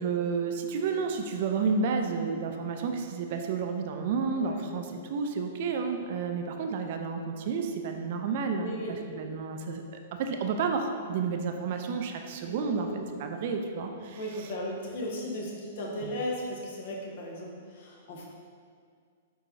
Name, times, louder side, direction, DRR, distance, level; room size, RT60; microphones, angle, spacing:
voice 1, 0.0-12.9 13.2-14.2 16.0-16.2, right 5 dB, 55° right, 5 dB, 0.4 m, -31 dB
voice 2, 8.5-9.0 12.4-13.1 14.1-18.3, left 1 dB, 60° left, -2 dB, 1.0 m, -36 dB
4.5 x 4.5 x 2.6 m, 2.1 s
hypercardioid pair, 125°, 0 cm